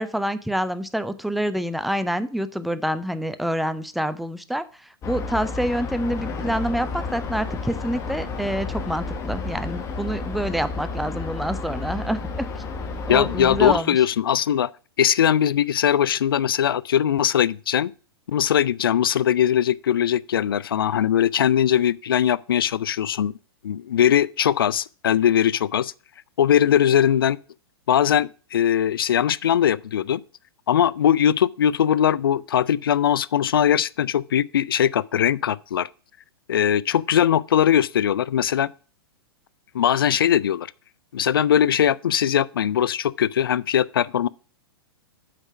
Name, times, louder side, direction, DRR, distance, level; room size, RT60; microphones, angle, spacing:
voice 1, 0.0-12.6 13.1-14.0, equal, ahead, 0.5 m, -27 dB
sound 1, 5.0-13.8, left 3 dB, 25° left, 1.4 m, -31 dB
voice 2, 13.1-14.7 15.0-17.9 18.3-23.3 23.6-25.9 26.4-27.4 27.9-30.2 30.7-35.9 36.5-38.7 39.7-40.7 41.1-44.3, left 9 dB, 65° left, 0.4 m, -20 dB
8.1 x 5.8 x 4.7 m
figure-of-eight pair, 105°, 13 cm